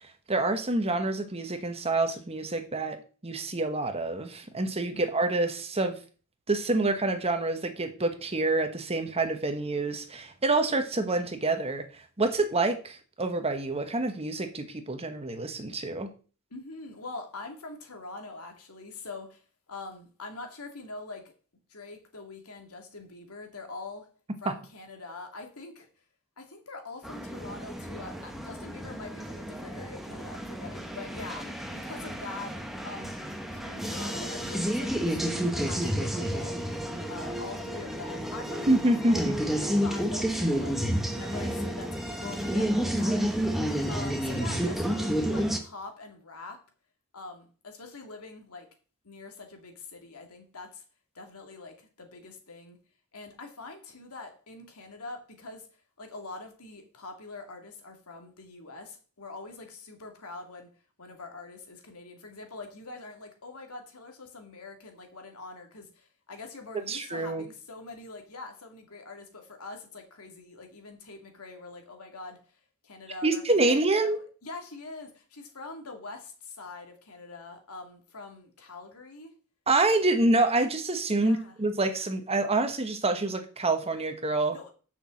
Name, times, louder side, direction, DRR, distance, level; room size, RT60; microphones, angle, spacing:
voice 1, 0.3-3.0 3.2-6.0 6.5-11.8 12.2-16.1 24.4-24.5 38.7-39.4 66.9-67.4 73.2-74.2 79.7-84.6, right 2 dB, 30° right, 1.2 m, -27 dB
voice 2, 16.5-19.4 19.7-21.3 21.7-24.1 24.4-25.9 26.4-33.2 33.5-36.6 37.1-40.8 41.1-46.6 47.1-48.7 49.0-50.8 51.1-52.8 53.1-60.7 61.0-72.6 72.8-79.3 81.2-81.5 84.5-84.7, left 3 dB, 80° left, 2.4 m, -44 dB
sound 1, 27.0-45.6, equal, ahead, 1.2 m, -31 dB
6.7 x 6.2 x 7.6 m
head